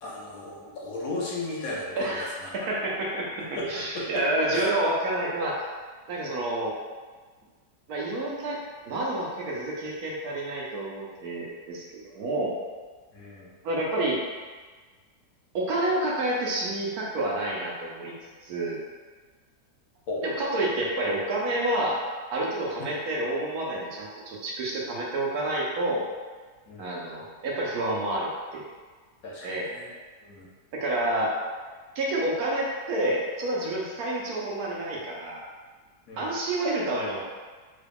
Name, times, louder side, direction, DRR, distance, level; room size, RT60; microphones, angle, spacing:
voice 1, 0.0-2.5 3.4-3.7 3.9-4.2 4.5-4.7 13.1-13.5 20.1-20.2 22.8-22.9 26.7-26.9 29.2-29.9 30.2-30.5 36.1-36.3, left 2 dB, 60° left, -5 dB, 1.1 m, -35 dB
voice 2, 2.0-5.6 6.1-6.7 7.9-8.6 8.9-12.5 13.6-14.2 15.5-18.1 18.4-18.8 20.2-22.0 22.3-26.0 26.8-28.6 29.4-29.7 30.7-31.3 31.9-35.4 36.2-37.2, right 1 dB, 70° right, -3 dB, 1.1 m, -29 dB
3.8 x 2.3 x 3.4 m, 1.4 s
omnidirectional pair, 1.8 m